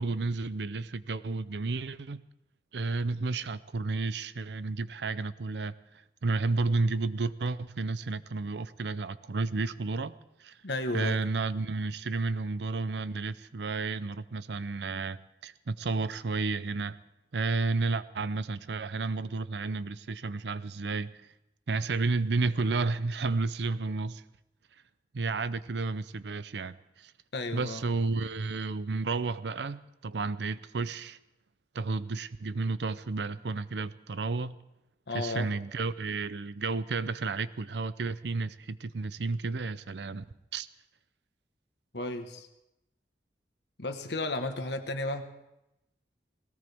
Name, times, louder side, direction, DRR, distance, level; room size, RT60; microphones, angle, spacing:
voice 1, 0.0-2.2 2.7-5.7 6.2-10.6 10.9-17.0 17.3-21.1 21.7-24.2 25.1-27.1 27.5-31.2 31.7-34.6 35.1-40.3 40.5-40.7, right 3 dB, 80° right, 0.6 m, -32 dB
voice 2, 10.6-11.2 27.3-27.8 35.1-35.5 41.9-42.5 43.8-45.3, left 2 dB, 80° left, 1.4 m, -33 dB
19.5 x 18.0 x 3.5 m
head